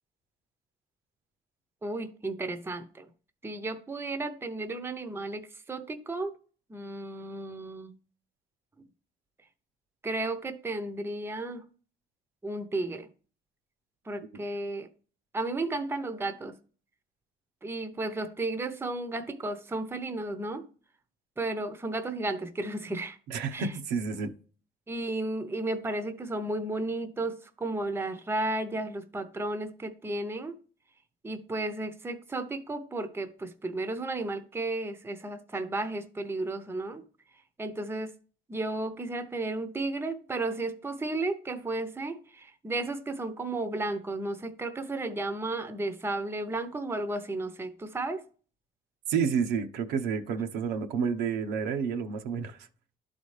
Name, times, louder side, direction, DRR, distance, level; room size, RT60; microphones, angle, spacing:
voice 1, 1.8-3.1 3.4-6.4 6.7-7.9 10.0-11.6 12.4-13.1 14.1-14.9 15.3-16.6 17.6-20.7 21.4-23.2 23.5-23.7 24.9-30.6 31.2-37.0 37.6-38.1 38.5-48.2, right 2 dB, 15° right, 0.7 m, -33 dB
voice 2, 23.3-24.3 49.1-52.6, right 6 dB, 90° right, 0.9 m, -30 dB
11.5 x 4.2 x 3.2 m
cardioid pair, 110°, 17 cm